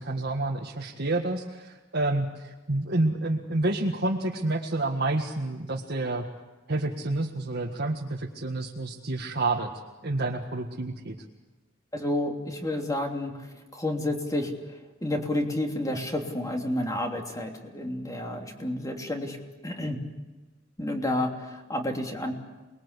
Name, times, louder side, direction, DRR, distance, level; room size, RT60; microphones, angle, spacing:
voice 1, 0.0-6.2 6.7-9.7 10.0-11.2, right 2 dB, 55° right, -1 dB, 1.8 m, -29 dB
voice 2, 11.9-19.4 19.6-20.0 20.8-22.3, left 1 dB, 20° left, 2 dB, 3.1 m, -30 dB
28.0 x 21.0 x 8.3 m, 1.2 s
head